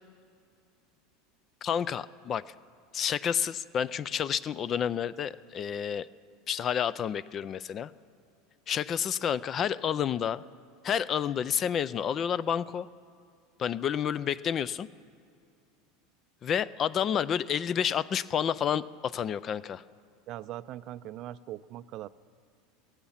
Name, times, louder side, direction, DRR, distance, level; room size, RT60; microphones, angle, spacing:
voice 1, 1.6-2.4 2.9-6.1 6.5-7.9 8.7-10.4 10.8-12.9 13.6-14.9 16.4-19.8, left 8 dB, 30° left, 19 dB, 0.3 m, -30 dB
voice 2, 20.3-22.1, right 14 dB, 45° right, 16 dB, 0.4 m, -40 dB
15.5 x 15.5 x 5.7 m, 2.4 s
supercardioid pair, 140°, 0 cm